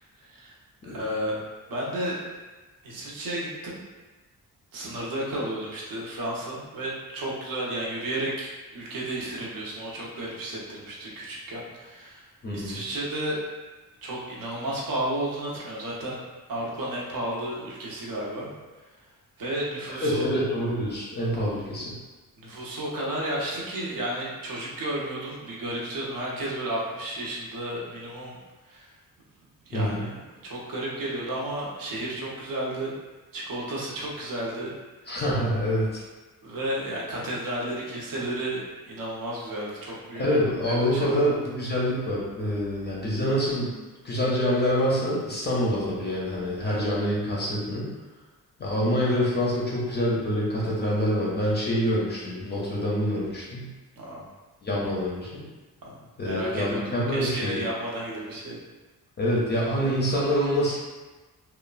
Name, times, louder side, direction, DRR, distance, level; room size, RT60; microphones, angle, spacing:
voice 1, 0.2-0.5 0.8-1.4 1.7-2.2 2.8-3.8 4.7-13.4 14.0-16.2 16.5-18.5 19.4-20.3 22.4-28.4 28.6-28.9 29.7-30.1 30.4-32.9 33.3-34.7 36.4-38.6 38.9-40.2 40.7-41.3 46.6-46.8 54.0-54.3 55.8-58.6, right 1 dB, 75° right, -4 dB, 0.7 m, -32 dB
voice 2, 12.4-12.8 19.9-21.9 29.7-30.1 35.1-36.0 40.1-43.7 44.0-47.9 48.6-53.7 54.6-55.4 56.2-57.6 59.2-60.8, equal, 30° left, -6 dB, 0.4 m, -26 dB
3.0 x 2.1 x 2.3 m, 1.2 s
wide cardioid pair, 170°, 34 cm